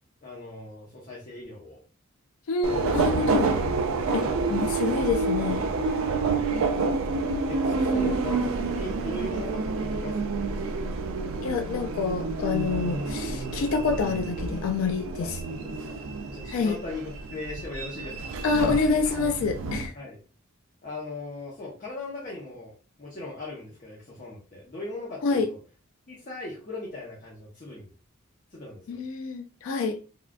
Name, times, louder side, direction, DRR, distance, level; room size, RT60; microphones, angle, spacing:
voice 1, 0.2-1.8 2.7-3.0 4.2-4.4 6.2-6.5 7.5-10.3 15.5-16.0 16.3-18.3 19.9-20.2 20.8-25.6 26.1-27.9 28.5-29.0, left 2 dB, 40° left, 0.7 m, -39 dB
voice 2, 2.5-3.6 4.1-5.6 6.5-6.9 8.0-8.1 11.4-15.4 16.5-16.8 18.4-19.9 25.2-25.5 28.9-30.0, left 4 dB, 85° left, 0.4 m, -27 dB
Subway metro underground, 2.6-19.9, right 3 dB, 80° right, 0.4 m, -28 dB
3.6 x 2.3 x 2.2 m
head